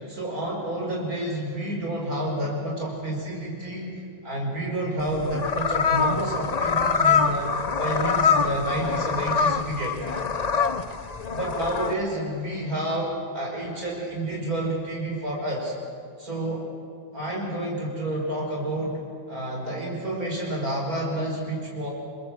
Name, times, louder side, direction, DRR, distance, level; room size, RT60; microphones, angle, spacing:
voice 1, 0.1-3.9 4.2-7.5 7.8-10.0 11.3-15.7 16.2-16.7 17.1-19.0 19.3-21.9, right 1 dB, 80° right, -1 dB, 6.2 m, -29 dB
sound 1, 5.0-11.9, left 5 dB, 35° left, 0.8 m, -24 dB
28.0 x 22.0 x 7.7 m, 2.3 s
omnidirectional pair, 1.5 m